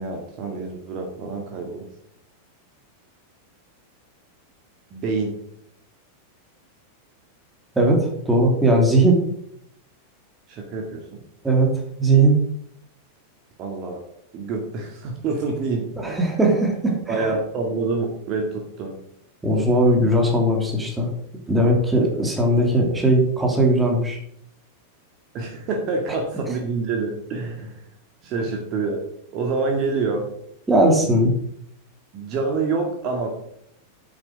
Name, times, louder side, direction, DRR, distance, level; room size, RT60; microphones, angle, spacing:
voice 1, 0.0-1.9 4.9-5.3 10.5-11.0 13.6-14.0 14.3-16.3 17.1-19.0 25.3-27.8 28.2-29.0 29.3-30.3 32.1-33.4, right 4 dB, 35° right, 1 dB, 2.1 m, -27 dB
voice 2, 7.8-9.2 11.4-11.7 12.0-12.4 16.0-17.2 19.4-21.1 21.5-24.2 30.7-31.3, right 1 dB, 10° right, 0 dB, 3.0 m, -18 dB
9.8 x 8.5 x 4.9 m, 0.70 s
figure-of-eight pair, 90°, 0 cm